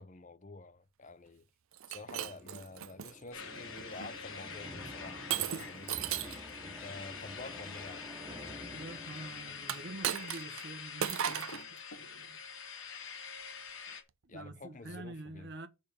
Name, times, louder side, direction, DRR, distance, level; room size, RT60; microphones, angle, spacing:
voice 1, 0.0-1.5 1.9-6.0 6.6-8.0 14.3-15.5, left 3 dB, 35° left, 0.7 m, -49 dB
Shatter, 1.7-3.1 3.8-4.1 5.3-6.5 9.6-10.7 11.0-11.6, right 10 dB, 80° right, 0.6 m, -36 dB
sound 1, 2.1-10.9, left 1 dB, 10° right, 2.6 m, -50 dB
sound 2, 3.3-14.0, left 5 dB, 85° left, 2.8 m, -46 dB
voice 2, 8.7-11.6 12.1-12.2 14.2-15.7, right 2 dB, 55° right, 1.3 m, -46 dB
6.6 x 5.5 x 6.7 m
head